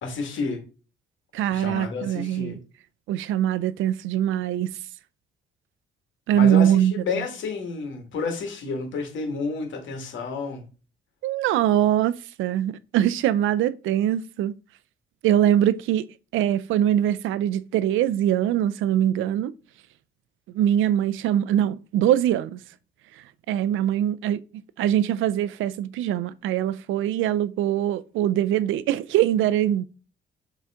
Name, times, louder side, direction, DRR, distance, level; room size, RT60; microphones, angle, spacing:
voice 1, 0.0-0.6 1.5-2.6 6.3-10.6, left 4 dB, 75° left, 2.1 m, -30 dB
voice 2, 1.3-2.6 3.1-4.7 6.3-7.2 11.2-14.5 15.2-16.1 16.3-19.5 20.5-22.6 23.5-24.4 24.8-29.8, right 11 dB, 85° right, 0.5 m, -22 dB
7.2 x 3.9 x 3.7 m
cardioid pair, 90°, 20 cm